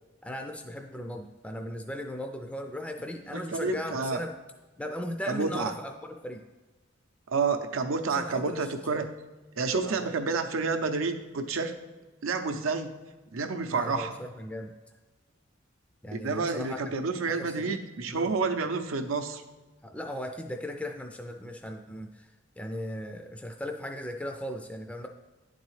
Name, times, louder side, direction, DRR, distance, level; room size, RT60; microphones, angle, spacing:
voice 1, 0.2-4.3 4.8-5.9 6.2-6.4 8.1-9.0 9.8-10.1 13.7-14.7 16.0-16.8 17.3-17.7 18.1-18.3 19.8-22.3 22.6-25.1, left 1 dB, 5° left, 4 dB, 0.3 m, -37 dB
voice 2, 3.3-4.2 5.3-5.7 7.3-9.1 9.6-11.7 12.2-12.9 13.3-14.1 16.1-19.4, right 4 dB, 90° right, 7 dB, 0.6 m, -29 dB
9.7 x 4.0 x 3.2 m, 1.2 s
head